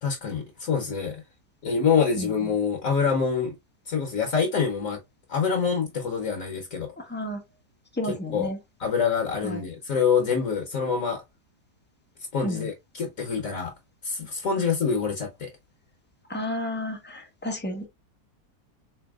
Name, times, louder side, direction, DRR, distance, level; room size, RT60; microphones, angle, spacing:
voice 1, 0.0-1.2 1.6-3.5 3.9-5.0 5.3-6.9 8.0-8.5 8.8-11.2 12.3-13.7 14.0-15.5, left 6 dB, 60° left, 1.2 m, -26 dB
voice 2, 7.0-7.4 7.9-8.6 9.4-9.6 12.4-12.7 16.3-17.9, left 1 dB, 10° left, 0.5 m, -31 dB
4.0 x 3.4 x 2.3 m
omnidirectional pair, 1.7 m